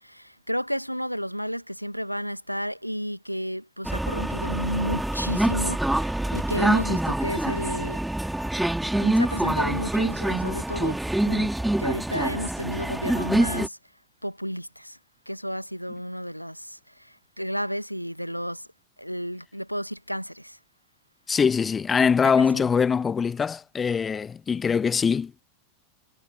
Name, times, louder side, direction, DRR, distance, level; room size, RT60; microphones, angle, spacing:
voice 1, 0.0-8.0 8.9-11.5 11.8-13.8 14.2-15.0 15.3-18.7 19.0-20.6 22.4-22.6, equal, 90° right, 2.1 m, -32 dB
sound 1, 3.8-13.7, right 1 dB, 5° right, 3.3 m, -25 dB
voice 2, 21.3-25.4, left 6 dB, 20° left, 1.2 m, -23 dB
figure-of-eight pair, 90°, 0 cm